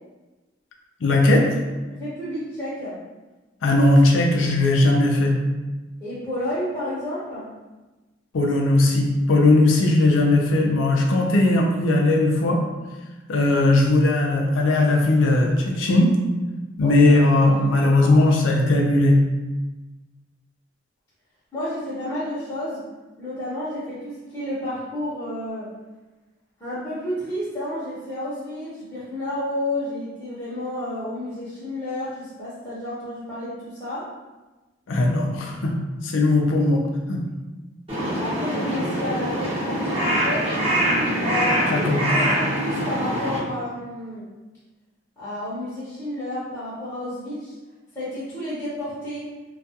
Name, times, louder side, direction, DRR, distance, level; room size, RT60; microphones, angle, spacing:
voice 1, 1.0-1.5 3.6-5.4 8.3-12.6 13.3-16.2 16.8-19.2 34.9-35.7 36.0-36.8 37.1-37.2 41.7-42.1, left 2 dB, 85° left, 0 dB, 0.5 m, -18 dB
voice 2, 1.9-2.9 6.0-7.5 16.8-18.2 21.5-22.8 23.2-25.7 26.6-34.1 38.1-40.5 41.2-44.3 45.2-47.5 47.9-49.3, left 1 dB, 15° left, -12 dB, 0.7 m, -31 dB
Crow, 37.9-43.4, equal, 30° right, 0.7 m, -24 dB
2.3 x 2.3 x 2.7 m, 1.2 s
head